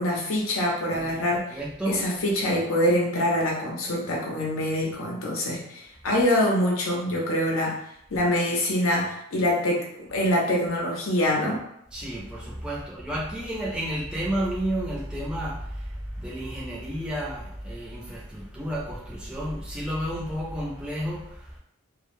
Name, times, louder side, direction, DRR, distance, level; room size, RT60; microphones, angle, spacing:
voice 1, 0.0-1.6 1.9-7.8 8.1-11.6, left 1 dB, 85° left, -1 dB, 0.7 m, -25 dB
voice 2, 0.9-1.2 1.5-2.1 11.9-21.6, equal, 5° right, -6 dB, 0.5 m, -31 dB
2.1 x 2.1 x 3.0 m, 0.74 s
head